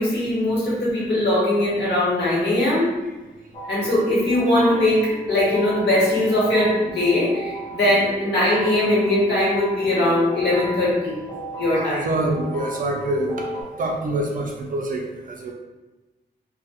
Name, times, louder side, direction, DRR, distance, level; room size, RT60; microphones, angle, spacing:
voice 1, 0.0-2.9 3.7-11.2 11.6-12.1, left 1 dB, 80° left, -7 dB, 1.0 m, -20 dB
sound 1, 3.5-13.6, left 1 dB, 25° left, 0.6 m, -33 dB
voice 2, 11.7-15.0 15.4-15.5, right 2 dB, 50° right, 1 dB, 0.4 m, -26 dB
2.2 x 2.0 x 2.7 m, 1.1 s
wide cardioid pair, 175°, 17 cm